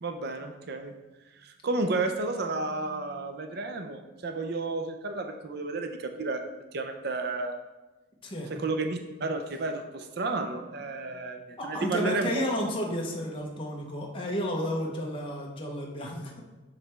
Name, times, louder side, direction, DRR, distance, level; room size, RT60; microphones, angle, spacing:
voice 1, 0.0-0.9 1.4-6.4 6.7-7.5 8.6-12.5, right 3 dB, 50° right, 6 dB, 0.5 m, -32 dB
voice 2, 11.6-16.4, equal, 25° left, -1 dB, 0.7 m, -32 dB
7.2 x 3.2 x 4.4 m, 1.1 s
head